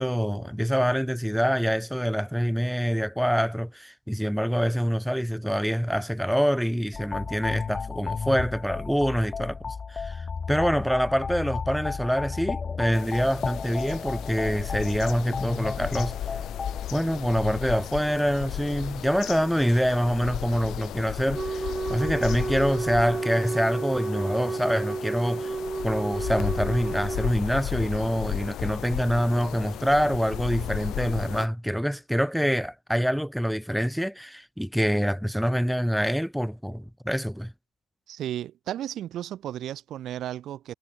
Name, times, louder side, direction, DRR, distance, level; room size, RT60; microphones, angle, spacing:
voice 1, 0.0-16.1 16.9-25.5 25.8-37.5, equal, ahead, 1.2 m, -26 dB
sound 1, 6.9-16.9, left 5 dB, 25° left, 1.5 m, -33 dB
sound 2, 12.9-31.5, left 12 dB, 55° left, 2.0 m, -35 dB
Wind instrument woodwind instrument, 21.3-27.4, right 4 dB, 20° right, 0.4 m, -31 dB
voice 2, 38.1-40.7, right 12 dB, 55° right, 1.3 m, -34 dB
supercardioid pair, 110°, 0 cm